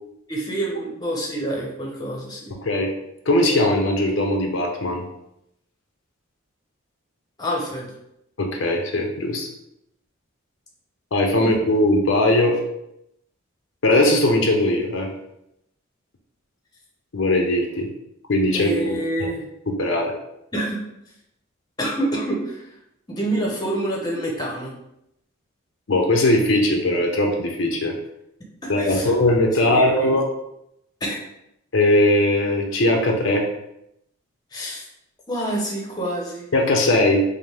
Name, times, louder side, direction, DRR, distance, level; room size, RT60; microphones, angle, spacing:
voice 1, 0.3-2.5 7.4-7.9 11.4-11.5 18.5-19.4 20.5-20.8 21.8-22.7 23.1-24.7 28.6-29.1 29.6-30.1 31.0-31.2 34.5-34.9 35.3-36.5, right 1 dB, 20° left, -2 dB, 0.7 m, -27 dB
voice 2, 3.3-5.0 8.4-9.5 11.1-12.6 13.8-15.1 17.1-17.9 18.3-19.0 19.7-20.1 25.9-27.9 28.7-30.2 31.7-33.5 36.5-37.2, left 1 dB, 65° left, 2 dB, 0.6 m, -19 dB
5.3 x 2.1 x 3.4 m, 0.81 s
head